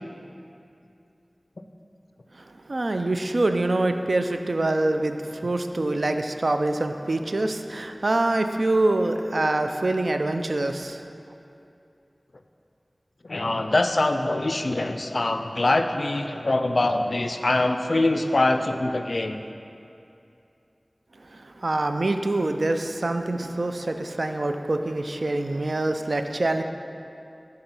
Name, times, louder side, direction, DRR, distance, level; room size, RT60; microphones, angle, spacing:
voice 1, 2.7-11.0 21.3-26.6, right 2 dB, 75° right, 7 dB, 0.3 m, -25 dB
voice 2, 13.3-19.4, left 2 dB, 70° left, 7 dB, 0.3 m, -23 dB
7.0 x 3.8 x 5.3 m, 2.6 s
wide cardioid pair, 55°, 0 cm